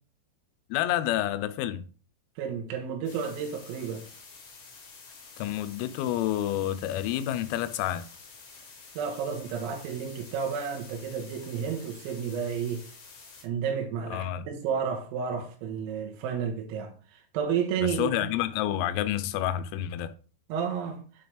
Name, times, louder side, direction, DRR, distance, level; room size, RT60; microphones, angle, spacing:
voice 1, 0.7-1.8 5.4-8.1 14.1-14.5 17.8-20.1, left 12 dB, 90° left, 3.4 m, -29 dB
voice 2, 2.4-4.0 9.0-12.9 13.4-18.3 20.5-21.0, right 7 dB, 85° right, 3.9 m, -31 dB
sound 1, 3.1-13.5, left 4 dB, 60° left, 4.1 m, -49 dB
9.3 x 4.5 x 3.3 m
omnidirectional pair, 6.0 m